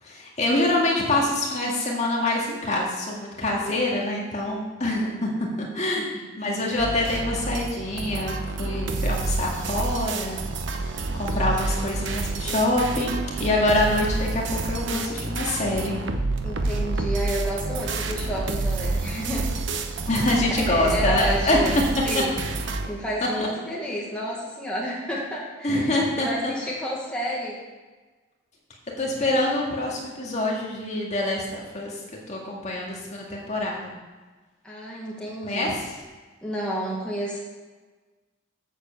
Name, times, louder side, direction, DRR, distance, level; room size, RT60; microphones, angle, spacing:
voice 1, 0.0-6.1 6.4-10.4 11.2-16.0 20.1-21.6 22.1-22.2 25.6-26.5 29.0-32.0 32.3-33.9 35.4-36.0, left 1 dB, 35° left, -2 dB, 2.0 m, -25 dB
sound 1, 6.8-22.9, right 3 dB, 60° right, 0.9 m, -28 dB
voice 2, 16.4-19.5 20.7-21.7 22.0-22.4 22.9-26.0 26.2-27.6 34.6-35.7 36.4-37.4, equal, 5° left, -5 dB, 1.6 m, -30 dB
8.1 x 7.4 x 7.1 m, 1.3 s
head